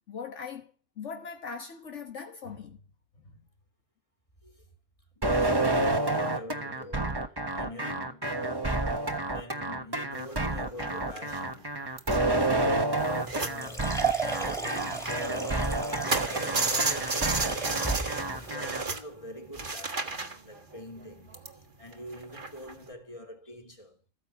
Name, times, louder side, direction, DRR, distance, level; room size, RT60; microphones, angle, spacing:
voice 1, 0.1-2.8 3.2-3.3, left 5 dB, 70° left, 1.7 m, -40 dB
voice 2, 5.1-8.4 9.2-17.8 18.3-24.0, left 1 dB, 25° left, 3.1 m, -45 dB
sound 1, 5.2-18.8, right 2 dB, 20° right, 1.2 m, -29 dB
sound 2, 10.1-13.6 13.9-15.6 15.9-22.9, right 3 dB, 40° right, 1.7 m, -33 dB
sound 3, 13.0-18.5, right 4 dB, ahead, 2.6 m, -35 dB
14.5 x 9.6 x 7.2 m
omnidirectional pair, 1.3 m